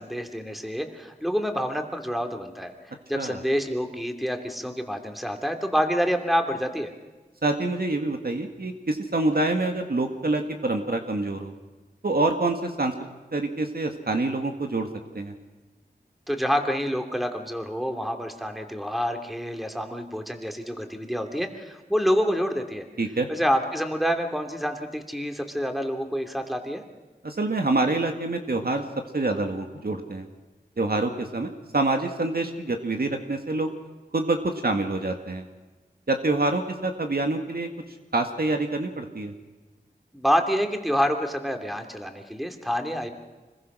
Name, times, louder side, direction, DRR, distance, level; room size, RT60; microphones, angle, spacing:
voice 1, 0.0-2.7 3.1-6.9 16.3-22.8 23.3-26.8 40.1-43.1, equal, ahead, 5 dB, 2.8 m, -27 dB
voice 2, 7.4-11.5 12.0-12.9 13.3-14.9 15.1-15.3 23.0-23.3 27.2-28.8 29.1-30.3 30.8-33.7 34.1-35.5 36.1-37.7 38.1-39.3, right 2 dB, 65° right, 4 dB, 2.0 m, -26 dB
25.5 x 21.5 x 6.2 m, 1.2 s
wide cardioid pair, 55°, 17 cm